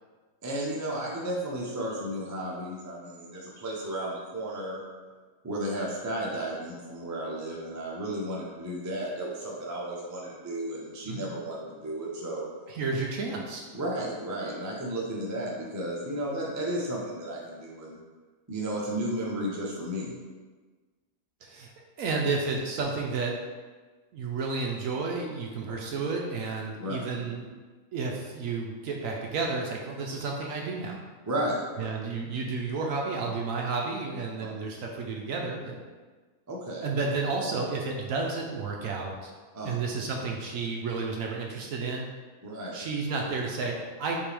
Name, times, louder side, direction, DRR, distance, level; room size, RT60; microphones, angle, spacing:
voice 1, 0.4-4.8 5.4-12.5 13.7-18.0 18.5-20.1 26.8-27.0 31.2-31.9 36.5-36.8 39.5-39.8 42.4-42.8, right 1 dB, 30° right, -4 dB, 0.3 m, -33 dB
voice 2, 12.7-13.6 21.4-21.7 22.0-23.4 24.1-27.5 27.9-31.0 31.8-35.8 36.8-39.3 39.6-42.1 42.7-44.2, right 4 dB, 70° right, 0 dB, 0.9 m, -31 dB
5.2 x 2.8 x 3.3 m, 1.4 s
omnidirectional pair, 1.7 m